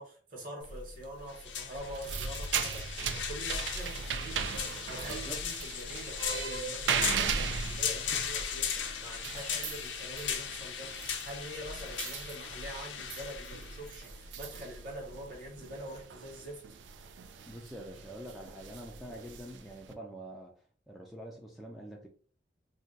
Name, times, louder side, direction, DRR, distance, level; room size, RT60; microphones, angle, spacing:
voice 1, 0.0-16.6, equal, 50° right, 1.1 m, -45 dB
sound 1, 0.6-15.3, left 7 dB, 90° left, 0.5 m, -38 dB
sound 2, 1.8-19.9, right 6 dB, 90° right, 0.4 m, -38 dB
voice 2, 5.0-5.4 17.4-20.5 20.9-22.1, right 1 dB, ahead, 0.3 m, -45 dB
2.5 x 2.2 x 3.9 m
head